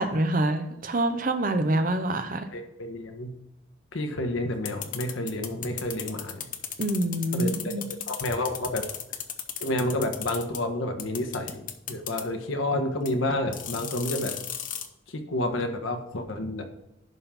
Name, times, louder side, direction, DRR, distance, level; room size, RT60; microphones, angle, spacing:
voice 1, 0.0-2.5 6.8-7.8, right 1 dB, 45° right, 8 dB, 0.8 m, -26 dB
voice 2, 2.5-3.3 3.9-6.4 7.3-7.5 8.1-8.9 9.6-14.3 15.1-16.6, left 1 dB, 85° left, 5 dB, 1.3 m, -29 dB
sound 1, 4.7-10.6 11.0-12.2 13.1-13.2 13.5-14.9, left 10 dB, 40° left, 0.7 m, -35 dB
11.0 x 3.8 x 5.8 m, 0.91 s
head